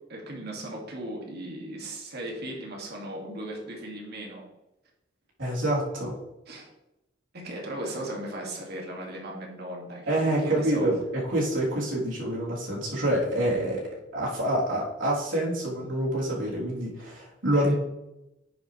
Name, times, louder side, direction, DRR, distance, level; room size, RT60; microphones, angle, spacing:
voice 1, 0.1-4.4 6.5-6.7 7.3-10.9 17.5-17.7, right 1 dB, 60° right, 0 dB, 2.3 m, -37 dB
voice 2, 5.4-6.2 10.1-13.8 14.1-17.7, right 1 dB, 80° right, -5 dB, 3.5 m, -27 dB
9.7 x 7.3 x 3.3 m, 0.90 s
head